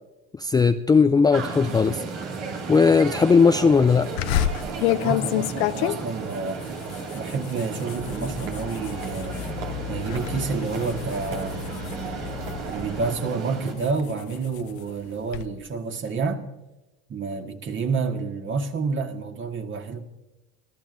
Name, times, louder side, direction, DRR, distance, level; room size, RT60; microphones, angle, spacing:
voice 1, 0.4-2.0 2.7-4.1, left 5 dB, 15° left, 0.3 m, -18 dB
sound 1, 1.3-13.7, right 5 dB, 90° right, 2.3 m, -34 dB
sound 2, 4.2-9.5 9.9-10.3 10.7-12.7 13.3-15.5, left 13 dB, 85° left, 0.6 m, -29 dB
voice 2, 4.7-6.6 7.1-9.4 9.9-12.2 12.7-16.4 17.1-20.0, right 4 dB, 35° right, 1.7 m, -29 dB
sound 3, 8.0-13.1, left 8 dB, 60° left, 2.0 m, -37 dB
25.5 x 13.5 x 2.6 m
supercardioid pair, 85°, 32 cm